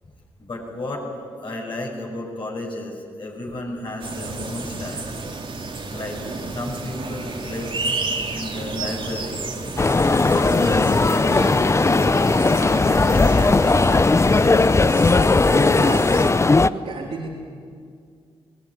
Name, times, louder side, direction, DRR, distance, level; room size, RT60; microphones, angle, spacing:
voice 1, 0.4-1.1 1.4-5.0 5.9-7.7 8.3-9.4 9.9-11.6 12.5-13.9 14.3-14.7, left 1 dB, 50° left, -3 dB, 6.5 m, -32 dB
sound 1, 4.0-16.3, right 3 dB, 55° right, 2.7 m, -31 dB
sound 2, 9.8-16.7, left 3 dB, 25° left, 0.6 m, -17 dB
voice 2, 15.7-16.1 16.4-17.3, right 4 dB, 75° right, -3 dB, 3.0 m, -34 dB
20.5 x 17.5 x 9.3 m, 2.2 s
cardioid pair, 55°, 11 cm